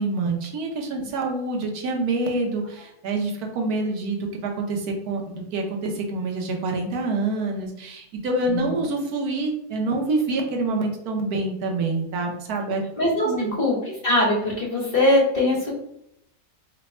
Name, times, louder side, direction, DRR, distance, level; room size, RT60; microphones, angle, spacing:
voice 1, 0.0-12.8 13.2-13.6, right 2 dB, 85° right, 1 dB, 1.3 m, -26 dB
voice 2, 13.0-13.3 13.6-13.8 14.0-15.7, left 1 dB, 40° left, -4 dB, 1.1 m, -21 dB
3.3 x 2.2 x 4.1 m, 0.77 s
omnidirectional pair, 1.6 m